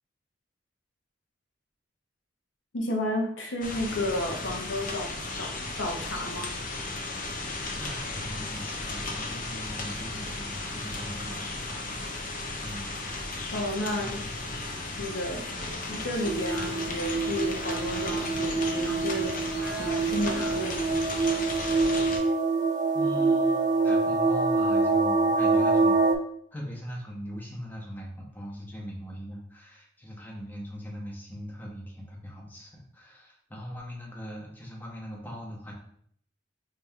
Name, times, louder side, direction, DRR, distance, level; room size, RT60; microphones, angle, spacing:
voice 1, 2.7-6.5 13.5-14.2 15.0-15.5 15.9-21.0, left 1 dB, 80° left, 1 dB, 0.8 m, -32 dB
sound 1, 3.6-22.2, left 2 dB, 50° left, 0.6 m, -35 dB
voice 2, 7.8-12.2 12.6-13.1 14.0-14.6 22.9-26.2 26.5-35.7, equal, 10° left, -3 dB, 0.8 m, -40 dB
Speech, 15.5-20.7, right 2 dB, 65° right, 0.8 m, -44 dB
sound 2, 16.2-26.2, right 3 dB, 40° right, 0.4 m, -25 dB
5.1 x 2.8 x 2.3 m, 0.65 s
head